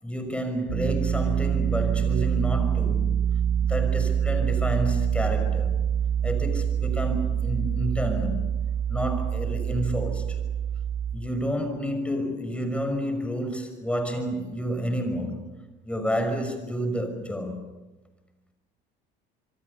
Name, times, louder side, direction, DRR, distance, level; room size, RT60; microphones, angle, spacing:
voice 1, 0.0-3.1 3.6-5.8 6.2-8.5 8.9-10.4 11.1-15.5 15.8-17.6, equal, 5° left, 6.1 m, -30 dB
sound 1, 0.7-11.2, right 8 dB, 65° right, 3.6 m, -25 dB
27.0 x 23.0 x 6.8 m
cardioid pair, 105°, 20 cm